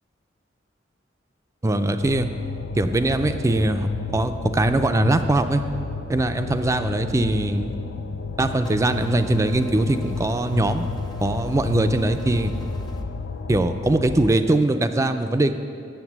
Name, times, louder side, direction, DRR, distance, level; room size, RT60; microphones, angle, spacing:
voice 1, 1.6-2.3 2.8-5.6 6.1-7.7 8.4-10.9 11.2-12.5 13.5-15.5, right 2 dB, 15° right, 8 dB, 0.4 m, -21 dB
sound 1, 2.0-14.4, left 4 dB, 60° left, 0.4 m, -32 dB
sound 2, 8.6-13.0, equal, 20° left, 0.7 m, -42 dB
8.0 x 7.2 x 7.2 m, 2.5 s
head